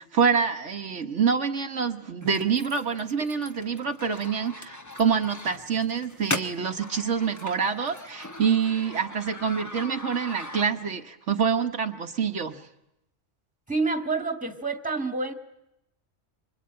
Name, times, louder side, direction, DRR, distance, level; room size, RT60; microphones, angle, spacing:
voice 1, 0.0-12.6, right 6 dB, 70° right, 5 dB, 1.5 m, -26 dB
sound 1, 2.2-11.0, left 1 dB, 15° left, 1.2 m, -39 dB
voice 2, 13.7-15.3, right 3 dB, 5° right, 6 dB, 2.0 m, -28 dB
25.5 x 25.0 x 8.8 m, 0.86 s
omnidirectional pair, 1.3 m